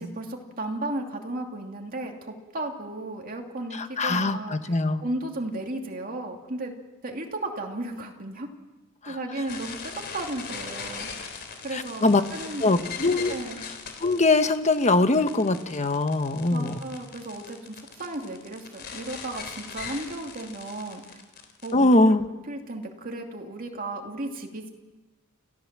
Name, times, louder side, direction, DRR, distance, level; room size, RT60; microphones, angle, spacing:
voice 1, 0.2-6.7 7.0-8.5 9.1-11.3 11.6-12.9 13.3-13.7 16.5-21.2 21.6-22.2 22.5-24.7, right 2 dB, 40° right, 2 dB, 2.6 m, -35 dB
voice 2, 3.7-5.0 9.0-9.2 11.7-12.2 12.6-13.3 14.0-16.7 21.7-22.2, left 2 dB, 30° left, 9 dB, 1.2 m, -22 dB
sound 1, 9.5-21.7, left 5 dB, 50° left, 3.5 m, -40 dB
29.5 x 15.5 x 7.5 m, 1.1 s
head